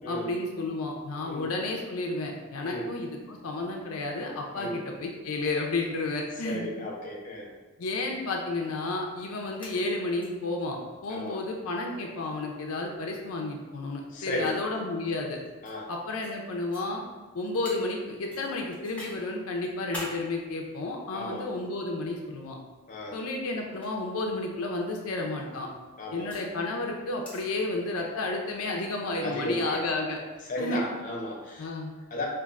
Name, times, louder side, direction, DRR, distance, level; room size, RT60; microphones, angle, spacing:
voice 1, 0.1-6.7 7.8-15.4 15.9-17.0 17.3-22.6 23.1-25.7 26.1-30.2 30.6-30.8 31.6-31.9, left 2 dB, 85° left, 1 dB, 0.5 m, -32 dB
voice 2, 6.4-7.5 11.1-11.4 14.1-14.5 15.6-15.9 21.1-21.5 22.9-23.2 26.0-26.3 29.2-29.9 30.5-31.7 32.1-32.3, left 1 dB, 40° left, -2 dB, 0.6 m, -34 dB
sound 1, 9.6-10.3 10.6-10.7 11.0-11.1 12.2-12.5 13.5-13.6 14.4-15.8 16.2-16.4 16.7-16.8 17.6-17.8 18.3-19.1 19.6-20.2 21.0-21.8 22.8-23.0 23.7-23.9 25.2-26.5 27.2-27.5, equal, 5° left, 0.8 m, -43 dB
5.1 x 2.5 x 2.4 m, 1.2 s
head